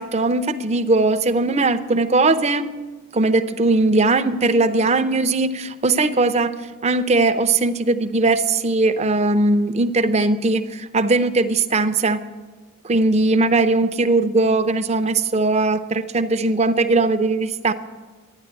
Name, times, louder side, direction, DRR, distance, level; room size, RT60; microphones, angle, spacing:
voice 1, 0.0-2.7 3.1-12.3 12.8-17.7, right 3 dB, 30° right, 11 dB, 0.6 m, -19 dB
12.5 x 10.0 x 8.7 m, 1.3 s
head